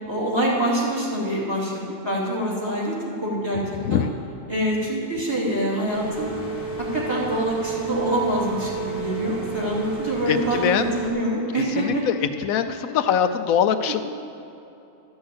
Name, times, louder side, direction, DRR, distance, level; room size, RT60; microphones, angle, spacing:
voice 1, 0.1-3.0 3.2-3.6 3.9-4.0 4.5-6.3 6.8-12.0 13.9-14.0, right 1 dB, 20° right, -4 dB, 2.9 m, -25 dB
voice 2, 3.8-4.1 10.3-10.9 11.8-12.1 12.4-14.0, left 8 dB, 85° left, 9 dB, 1.1 m, -22 dB
sound 1, 5.9-11.1, right 5 dB, 50° right, 3.3 m, -31 dB
12.5 x 6.4 x 8.5 m, 2.8 s
omnidirectional pair, 1.4 m